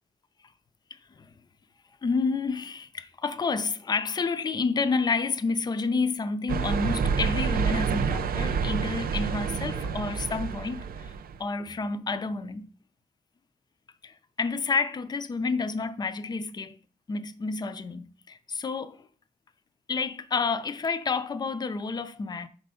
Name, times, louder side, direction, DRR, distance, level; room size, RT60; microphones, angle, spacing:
voice 1, 2.0-10.8 11.4-12.7 14.0-14.1 14.4-16.8 17.1-19.0 19.9-22.5, left 4 dB, 25° left, 0.4 m, -29 dB
sound 1, 6.5-11.4, right 6 dB, 65° right, 0.5 m, -28 dB
4.4 x 4.2 x 5.5 m
wide cardioid pair, 135°, 16 cm